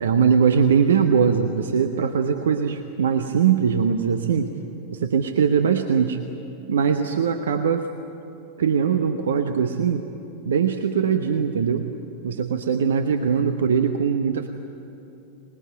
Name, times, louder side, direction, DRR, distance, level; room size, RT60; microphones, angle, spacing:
voice 1, 0.0-4.5 4.9-6.2 6.7-7.9 8.6-10.1 10.4-11.9 12.2-14.5, right 7 dB, 65° right, 7 dB, 1.0 m, -21 dB
25.0 x 20.5 x 9.3 m, 2.9 s
figure-of-eight pair, 90°, 0 cm